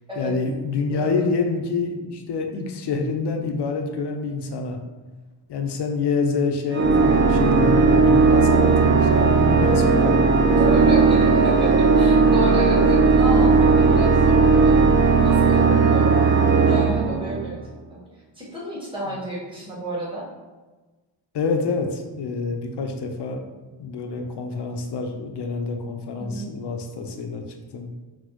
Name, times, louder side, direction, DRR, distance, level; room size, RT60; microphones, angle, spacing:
voice 1, 0.2-4.8 5.5-10.9 12.8-13.1 19.0-19.1 21.3-23.4 23.8-27.4 27.7-27.9, left 4 dB, 60° left, 4 dB, 0.6 m, -27 dB
voice 2, 0.9-1.3 10.5-16.1 16.5-17.6 17.9-18.0 18.3-20.3 26.2-26.5, equal, 10° right, -7 dB, 1.3 m, -30 dB
Organ, 6.7-17.7, right 4 dB, 25° right, 0.4 m, -17 dB
4.2 x 2.1 x 2.9 m, 1.2 s
cardioid pair, 70°, 47 cm